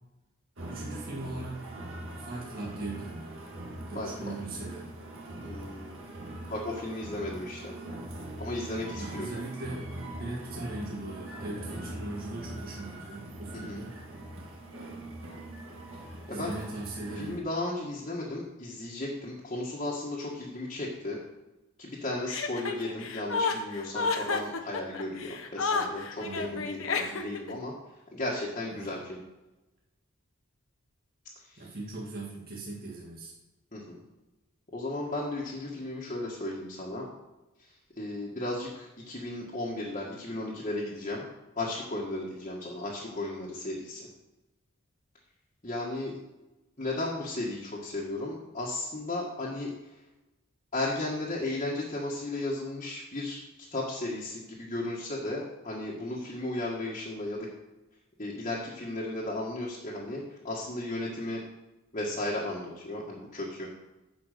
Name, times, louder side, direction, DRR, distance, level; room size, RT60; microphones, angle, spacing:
sound 1, 0.6-17.4, right 1 dB, 65° right, 2.0 m, -42 dB
voice 1, 0.7-1.7 2.1-3.4 3.9-4.9 8.9-9.9 10.1-14.0 16.3-17.4 26.2-26.7 28.7-29.0 31.6-33.3, right 2 dB, 45° right, -4 dB, 1.9 m, -39 dB
voice 2, 3.9-4.3 5.4-5.9 6.5-7.7 8.4-9.3 13.5-13.8 16.3-16.5 17.2-21.2 21.8-27.7 28.1-29.2 31.4-31.7 33.7-34.0 34.7-37.1 37.9-41.2 41.5-44.1 45.6-46.1 46.8-50.0 50.7-53.4 53.7-57.5 58.2-61.4 61.9-63.7, left 2 dB, 35° left, -5 dB, 1.6 m, -35 dB
Chuckle chortle, 22.3-27.5, left 4 dB, 70° left, 1.0 m, -31 dB
10.5 x 5.1 x 6.7 m, 1.0 s
head